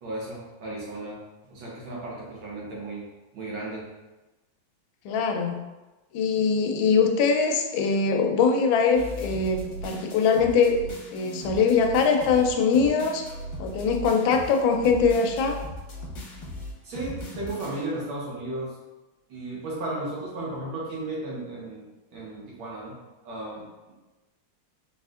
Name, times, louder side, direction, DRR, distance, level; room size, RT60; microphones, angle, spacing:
voice 1, 0.0-1.2 1.5-3.1 3.3-3.9 16.8-18.7 19.3-23.0 23.2-23.9, right 2 dB, 90° right, -4 dB, 1.9 m, -35 dB
voice 2, 5.0-5.6 6.1-13.3 13.6-15.6, left 5 dB, 85° left, 4 dB, 1.3 m, -22 dB
sound 1, 8.9-18.1, left 1 dB, 50° left, 1.0 m, -38 dB
4.1 x 3.7 x 2.4 m, 1.1 s
omnidirectional pair, 2.1 m